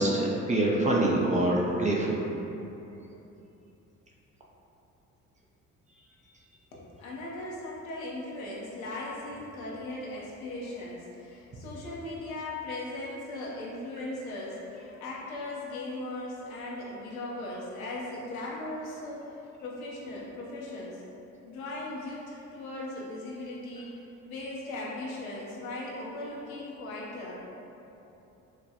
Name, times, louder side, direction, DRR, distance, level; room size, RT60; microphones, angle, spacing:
voice 1, 0.0-2.2, right 1 dB, 20° right, -3 dB, 0.5 m, -25 dB
voice 2, 6.7-19.3 19.6-21.0 21.4-27.3, left 2 dB, 80° left, -5 dB, 0.7 m, -38 dB
4.8 x 2.2 x 2.7 m, 2.9 s
hypercardioid pair, 50°, 41 cm